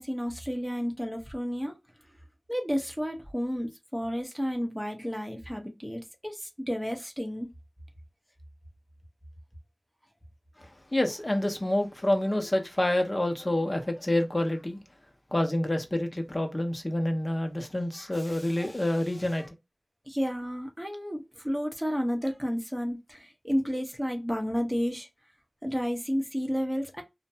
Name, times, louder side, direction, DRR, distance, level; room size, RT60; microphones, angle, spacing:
voice 1, 0.0-1.7 2.5-7.5 20.1-25.1 25.6-27.0, equal, 5° right, 0.8 m, -31 dB
voice 2, 10.6-14.8 15.3-19.5, left 1 dB, 30° left, 0.7 m, -28 dB
2.5 x 2.1 x 2.7 m
wide cardioid pair, 45°, 0 cm